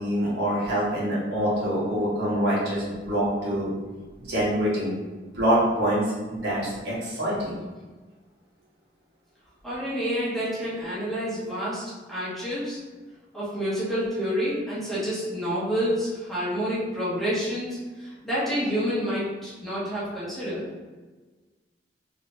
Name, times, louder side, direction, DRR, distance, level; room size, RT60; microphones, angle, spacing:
voice 1, 0.0-3.7 4.2-4.9 5.3-7.5, equal, 65° right, -7 dB, 1.4 m, -25 dB
voice 2, 9.6-12.8 13.3-20.6, equal, ahead, -11 dB, 1.2 m, -28 dB
3.9 x 3.1 x 2.7 m, 1.3 s
head